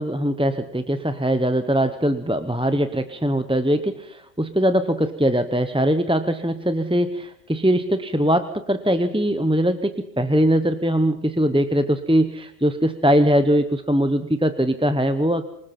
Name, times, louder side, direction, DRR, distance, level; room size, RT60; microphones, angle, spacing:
voice 1, 0.0-15.5, equal, 5° right, 9 dB, 0.6 m, -21 dB
24.5 x 20.0 x 5.8 m, 0.73 s
omnidirectional pair, 1.3 m